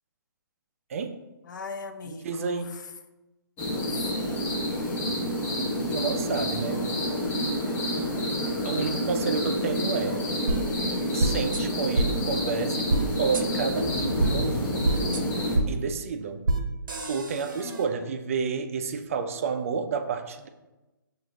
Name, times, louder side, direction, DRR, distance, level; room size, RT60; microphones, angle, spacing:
voice 1, 1.5-2.8 3.7-4.4 7.6-8.4 17.5-18.0, left 4 dB, 60° left, 7 dB, 0.5 m, -41 dB
voice 2, 2.1-2.7 5.9-6.8 8.2-8.4 8.6-10.2 11.1-14.8 15.7-16.4 17.0-20.5, right 5 dB, 40° right, 8 dB, 0.3 m, -30 dB
sound 1, 3.6-15.6, left 1 dB, 15° left, 0.6 m, -28 dB
sound 2, 10.5-10.6 11.2-11.6 11.9-12.1 12.9-13.0 13.3-13.4 14.2-14.3 14.8-15.2 15.5-15.7 16.4-16.6 16.9-17.8, right 2 dB, 70° right, 0.7 m, -25 dB
5.9 x 2.5 x 3.0 m, 1.1 s
hypercardioid pair, 150°, 11 cm